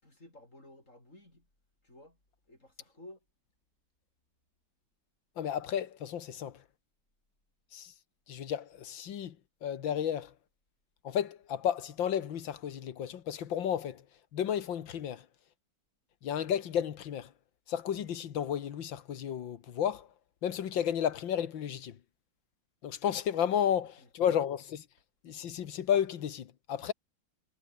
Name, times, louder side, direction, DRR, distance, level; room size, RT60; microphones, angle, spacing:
voice 1, 0.0-1.5 1.8-2.2 2.5-3.3 23.7-24.1, left 1 dB, 40° left, 8.5 m, -54 dB
voice 2, 5.4-6.6 7.7-7.9 8.3-9.4 9.6-10.3 11.0-14.0 14.3-15.3 16.2-17.3 17.7-20.1 20.4-22.0 22.8-24.9 25.2-26.9, left 9 dB, 85° left, 2.1 m, -32 dB
omnidirectional pair, 2.0 m